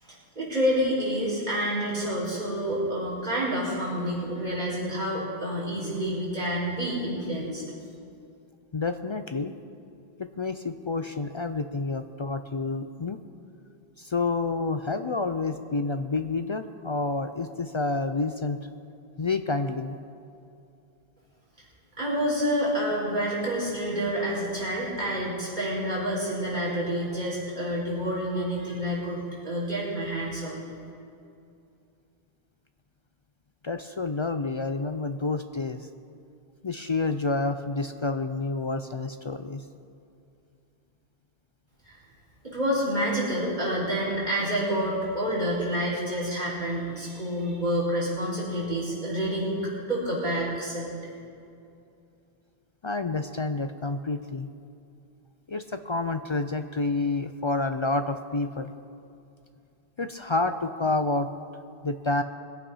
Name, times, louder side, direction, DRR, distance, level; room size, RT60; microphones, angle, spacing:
voice 1, 0.0-7.6 22.0-30.6 41.8-42.0 42.4-49.6 49.9-50.9, equal, 45° right, -6 dB, 4.8 m, -28 dB
voice 2, 8.7-9.6 10.2-13.2 14.0-18.6 19.2-20.0 33.6-35.9 36.6-39.6 52.8-54.5 55.5-58.7 60.0-61.3 61.8-62.2, left 3 dB, 50° left, 8 dB, 0.3 m, -29 dB
21.5 x 8.5 x 5.5 m, 2.6 s
omnidirectional pair, 1.1 m